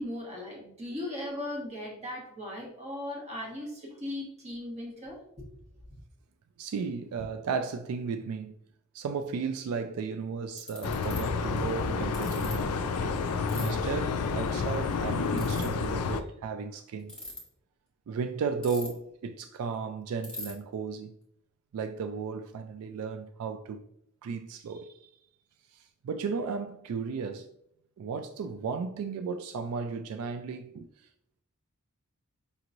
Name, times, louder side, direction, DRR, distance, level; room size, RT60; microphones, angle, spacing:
voice 1, 0.0-5.4, left 1 dB, 30° right, 1.2 m, -38 dB
voice 2, 6.6-8.6 8.9-13.2 13.6-17.2 18.1-21.2 21.7-23.8 24.2-25.1 25.7-27.5 28.0-30.9, right 5 dB, 75° right, 0.3 m, -35 dB
Ratchet pawl, 9.9-10.0 10.6-11.2 12.1-12.5 13.5-13.7 15.3-15.6 17.0-17.4 18.6-19.1 19.4-19.5 19.7-19.8 20.2-20.5, left 2 dB, 5° left, 1.1 m, -40 dB
sound 1, 10.8-16.2, left 4 dB, 85° left, 0.4 m, -30 dB
5.3 x 3.0 x 2.5 m
head